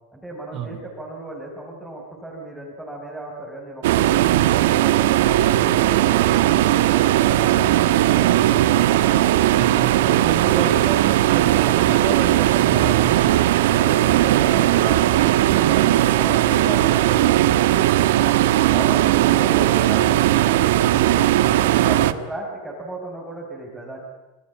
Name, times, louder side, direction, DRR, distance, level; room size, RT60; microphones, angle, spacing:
voice 1, 0.1-6.7 12.7-13.1 13.7-17.9 18.7-21.3 21.7-24.0, right 1 dB, 5° right, -4 dB, 5.9 m, -35 dB
sound 1, 3.8-22.1, right 14 dB, 75° right, 1.4 m, -18 dB
voice 2, 9.5-13.3, right 7 dB, 35° right, 7 dB, 3.7 m, -29 dB
27.5 x 20.0 x 8.7 m, 1.2 s
supercardioid pair, 150°, 0 cm